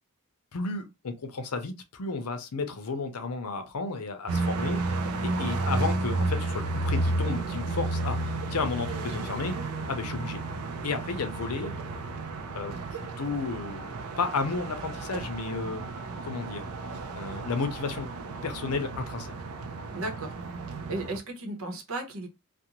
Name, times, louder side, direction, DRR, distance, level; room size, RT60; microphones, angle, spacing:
voice 1, 0.5-9.6 9.9-10.4 10.8-11.7 12.5-15.9 16.2-16.7 17.1-18.1 18.4-19.3, left 4 dB, 90° left, 0.6 m, -33 dB
sound 1, 4.3-21.2, right 2 dB, 80° right, 0.4 m, -32 dB
voice 2, 19.9-20.3 20.9-22.3, right 2 dB, 65° right, 0.8 m, -34 dB
2.5 x 2.1 x 2.9 m
head